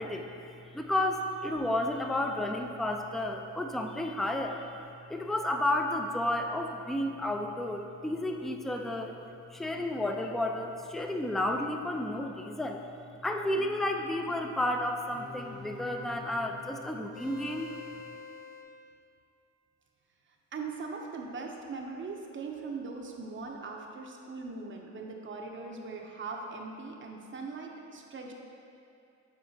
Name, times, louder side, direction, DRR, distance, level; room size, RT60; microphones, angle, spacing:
voice 1, 0.0-4.7 5.1-9.2 9.5-12.9 13.2-17.7, left 1 dB, ahead, 3 dB, 0.3 m, -32 dB
sound 1, 13.5-14.4 15.1-18.6, left 4 dB, 85° left, 1.2 m, -47 dB
voice 2, 20.5-28.3, right 4 dB, 40° right, 1 dB, 0.7 m, -40 dB
8.7 x 4.2 x 2.8 m, 2.7 s
cardioid pair, 90°, 30 cm